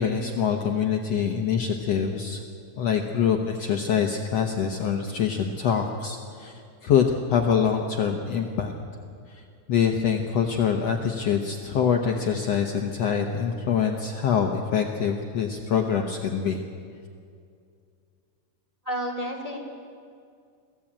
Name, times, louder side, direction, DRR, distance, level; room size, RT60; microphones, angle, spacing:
voice 1, 0.0-2.4 2.8-6.5 6.8-8.7 9.3-9.4 9.7-16.6, left 7 dB, 65° left, 2 dB, 1.9 m, -25 dB
voice 2, 18.8-19.6, equal, 10° right, -1 dB, 2.4 m, -30 dB
22.5 x 15.5 x 8.9 m, 2.3 s
omnidirectional pair, 3.8 m